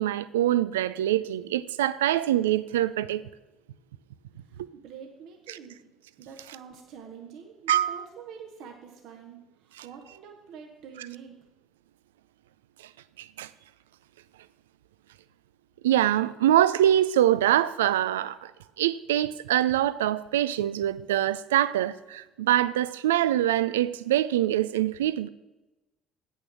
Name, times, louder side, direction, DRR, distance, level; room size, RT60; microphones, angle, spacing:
voice 1, 0.0-3.2 4.6-4.7 5.5-5.6 7.7-8.0 13.2-13.5 15.8-18.5 18.8-25.3, right 12 dB, 85° right, 0.3 m, -24 dB
voice 2, 4.4-5.8 6.2-11.4, right 7 dB, 65° right, 1.0 m, -46 dB
8.4 x 6.4 x 6.1 m
hypercardioid pair, 60°, 0 cm